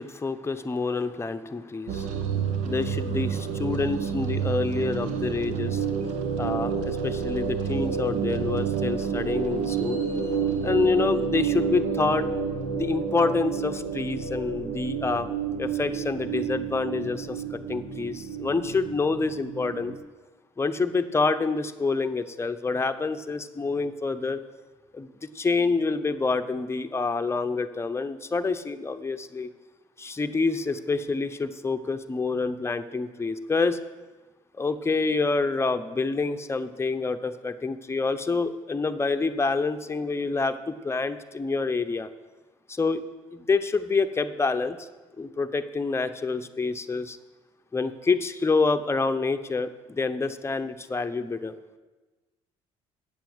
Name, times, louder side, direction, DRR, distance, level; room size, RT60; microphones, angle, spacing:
voice 1, 0.0-2.1 2.6-5.8 6.4-10.0 10.6-12.3 12.7-15.3 15.6-19.9 20.6-24.4 24.9-29.5 30.0-33.8 34.6-42.1 42.7-43.0 43.3-44.9 45.2-47.2 47.7-51.5, left 4 dB, 20° left, 8 dB, 0.8 m, -27 dB
sound 1, 1.9-19.9, right 6 dB, 80° right, 1.0 m, -29 dB
8.5 x 7.0 x 7.9 m, 1.2 s
supercardioid pair, 70°, 13 cm